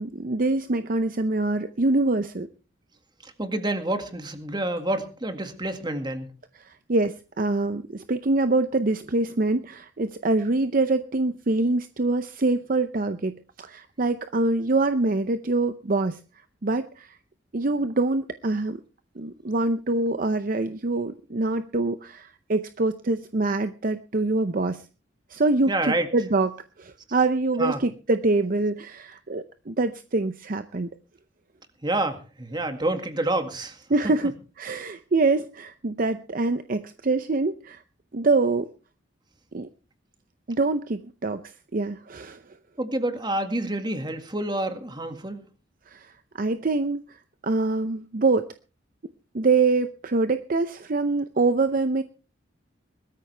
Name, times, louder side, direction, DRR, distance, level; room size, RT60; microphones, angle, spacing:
voice 1, 0.0-2.5 6.6-16.2 16.6-17.2 17.5-18.8 19.2-24.8 25.3-30.9 33.9-37.8 38.1-38.7 39.5-39.7 40.5-42.4 45.9-47.2 47.4-48.5 49.3-52.0, right 3 dB, 50° right, 10 dB, 0.7 m, -25 dB
voice 2, 3.2-6.3 25.7-26.1 27.6-27.8 31.8-33.8 34.0-34.1 42.8-45.4, right 1 dB, 25° right, 7 dB, 1.9 m, -28 dB
20.0 x 13.5 x 3.4 m, 0.34 s
head